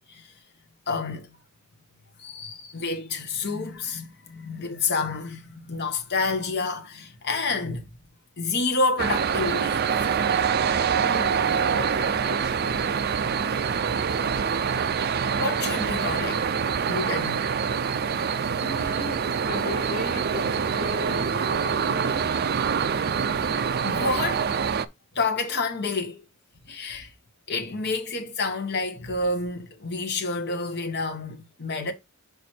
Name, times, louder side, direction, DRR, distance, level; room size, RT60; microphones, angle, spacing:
voice 1, 0.9-1.3 2.2-7.9 8.4-9.8 10.3-10.5 15.3-16.5 16.9-17.5 23.8-24.5 25.1-26.2 26.7-27.1 27.5-31.9, left 3 dB, 50° left, 1.2 m, -29 dB
sound 1, 9.0-24.8, right 6 dB, 45° right, 0.4 m, -25 dB
voice 2, 11.0-13.3 18.6-22.2, left 3 dB, 30° left, 3.2 m, -38 dB
5.2 x 4.6 x 4.4 m
head